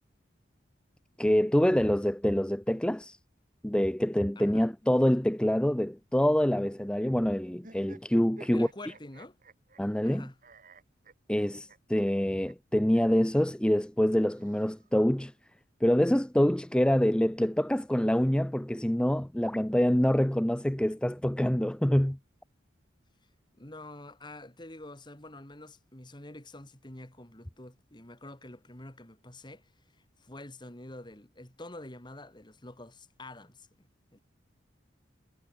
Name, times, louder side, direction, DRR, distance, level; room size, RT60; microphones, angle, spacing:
voice 1, 1.2-3.2 3.6-8.9 9.8-10.3 11.3-15.3 15.8-22.2, equal, 5° left, 0.5 m, -26 dB
voice 2, 4.4-4.7 8.5-9.4 10.0-10.4 23.6-29.7 30.2-33.9 34.1-34.2, left 1 dB, 25° left, 2.4 m, -47 dB
sound 1, 7.6-10.1 10.4-11.8 12.0-12.1 12.5-12.6 12.9-13.0 14.1-15.1, right 2 dB, 45° right, 3.7 m, -53 dB
head